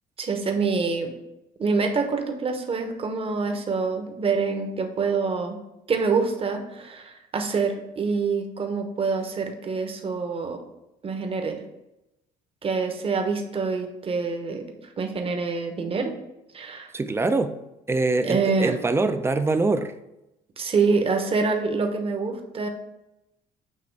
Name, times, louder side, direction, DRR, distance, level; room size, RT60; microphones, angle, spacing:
voice 1, 0.2-1.1 1.6-5.6 5.9-10.6 11.0-11.6 12.6-14.6 15.0-16.1 16.5-16.9 18.2-18.7 20.6-22.7, right 4 dB, 35° right, 5 dB, 1.0 m, -26 dB
voice 2, 16.9-17.6 17.9-19.9, right 3 dB, 15° right, 9 dB, 0.5 m, -23 dB
7.6 x 3.1 x 4.6 m, 0.91 s
cardioid pair, 110°, 17 cm